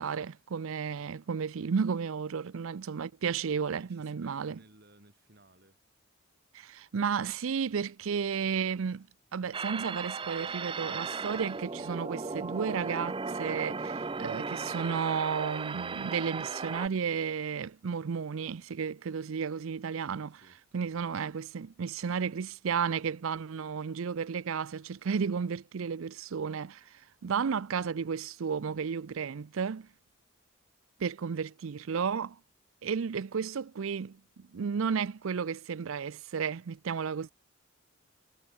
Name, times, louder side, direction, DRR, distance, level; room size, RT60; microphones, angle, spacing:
voice 1, 0.0-4.6 6.5-9.1 9.3-20.3 20.7-29.9 31.0-32.4 32.8-37.3, right 6 dB, 75° right, 0.5 m, -33 dB
voice 2, 3.7-5.8 20.0-21.1, right 1 dB, 50° right, 6.1 m, -61 dB
sound 1, 7.7-15.0, left 1 dB, 30° left, 6.9 m, -74 dB
sound 2, 9.5-16.9, right 4 dB, 25° right, 0.5 m, -36 dB
head